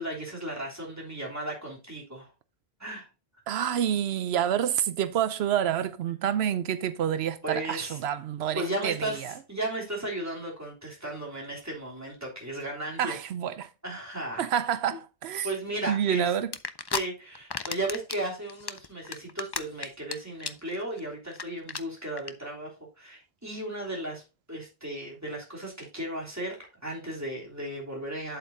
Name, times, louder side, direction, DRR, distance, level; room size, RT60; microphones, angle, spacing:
voice 1, 0.0-2.3 2.8-3.1 7.4-8.0 8.5-13.2 13.8-14.5 14.9-15.0 15.4-16.3 16.9-24.2 24.5-28.4, right 1 dB, 15° right, 3.1 m, -35 dB
voice 2, 3.5-9.3 13.0-13.7 14.4-15.5 15.9-16.5, right 9 dB, 85° right, 0.9 m, -28 dB
sound 1, 16.5-17.0 17.4-18.2 18.5-20.1 20.4-20.7 21.0-21.1 21.3-21.4 21.7-21.8 22.2-22.3, left 5 dB, 35° left, 0.4 m, -32 dB
8.2 x 7.9 x 2.6 m
omnidirectional pair, 1.0 m